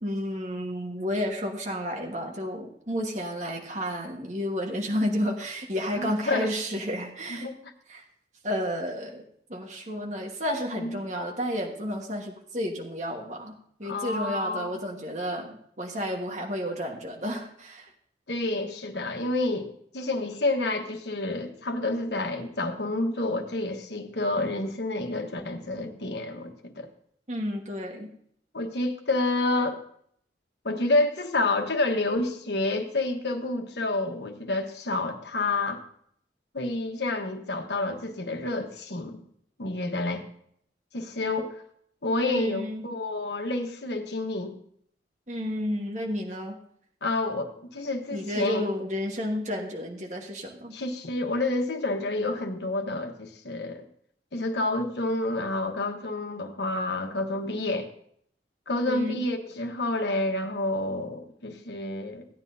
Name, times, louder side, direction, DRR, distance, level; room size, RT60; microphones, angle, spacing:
voice 1, 0.0-7.5 7.9-8.0 8.4-9.2 9.5-13.5 13.8-17.9 27.3-28.1 42.3-42.9 45.3-46.6 48.1-50.7 58.8-59.2, equal, 40° right, 0 dB, 1.5 m, -31 dB
voice 2, 5.9-6.5 7.3-7.7 10.7-10.9 13.8-14.7 18.3-26.9 28.5-29.8 30.6-35.8 36.5-39.2 39.6-40.2 40.9-41.6 42.0-44.6 47.0-48.6 50.7-53.8 54.3-57.9 58.7-62.3, left 2 dB, 70° left, 5 dB, 1.2 m, -29 dB
16.0 x 9.8 x 2.7 m, 0.66 s
head